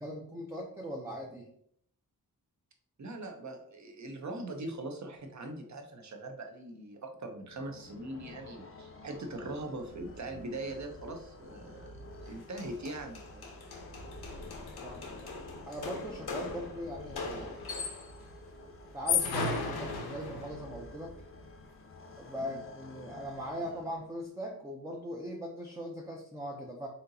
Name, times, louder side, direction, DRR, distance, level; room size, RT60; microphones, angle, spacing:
voice 1, 0.0-1.5 13.3-13.5 14.8-15.3 15.6-17.6 18.9-21.1 22.2-26.9, equal, 10° right, -1 dB, 0.4 m, -40 dB
voice 2, 3.0-13.2 22.4-22.6, right 2 dB, 50° right, 4 dB, 0.7 m, -41 dB
sound 1, 7.3-24.3, left 1 dB, 35° left, 0.6 m, -49 dB
sound 2, 12.3-12.4 12.6-18.2 18.9-20.7, left 4 dB, 90° left, 0.9 m, -37 dB
4.3 x 3.8 x 2.6 m, 0.66 s
wide cardioid pair, 160°, 37 cm